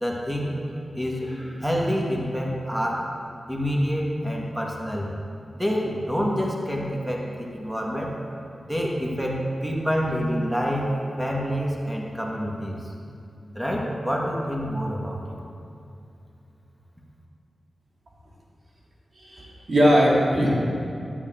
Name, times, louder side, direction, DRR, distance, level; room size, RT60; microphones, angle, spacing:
voice 1, 0.0-3.1 3.5-5.1 5.5-8.1 8.6-12.8 13.6-15.4, equal, 5° right, -2 dB, 1.8 m, -27 dB
voice 2, 19.2-20.5, equal, 55° right, -4 dB, 2.6 m, -20 dB
12.0 x 8.7 x 3.8 m, 2.5 s
cardioid pair, 55°, 0 cm